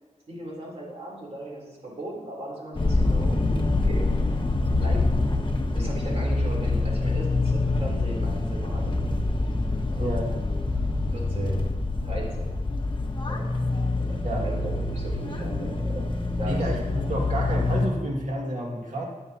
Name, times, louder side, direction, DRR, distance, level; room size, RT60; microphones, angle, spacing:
voice 1, 0.3-4.1 4.8-5.0 5.7-9.2 9.9-10.1 11.1-11.6 12.0-12.5 13.3-13.5 14.0-14.2 14.4-16.0 16.4-17.1, right 1 dB, 55° right, -3 dB, 3.6 m, -37 dB
sound 1, 2.7-17.9, left 2 dB, 40° left, 1.2 m, -25 dB
voice 2, 10.0-10.3 14.2-14.5 16.5-19.0, right 1 dB, 75° right, -1 dB, 2.2 m, -29 dB
16.5 x 9.1 x 2.9 m, 1.4 s
wide cardioid pair, 105°, 13 cm